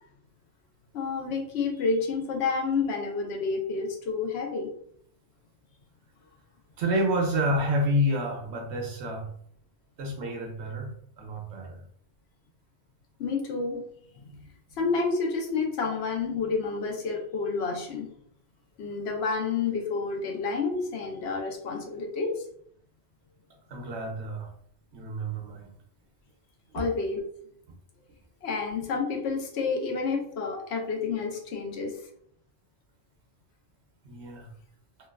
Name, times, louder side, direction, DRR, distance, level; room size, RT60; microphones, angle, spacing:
voice 1, 0.9-4.7 13.2-13.8 14.8-18.1 18.8-22.4 26.7-27.2 28.4-32.0, left 4 dB, 80° left, 1 dB, 0.9 m, -29 dB
voice 2, 6.8-9.3 10.0-11.8 14.3-14.4 23.7-24.5 24.9-25.7 34.0-34.5, equal, 85° right, 2 dB, 1.0 m, -29 dB
3.0 x 2.2 x 2.3 m, 0.65 s
omnidirectional pair, 1.1 m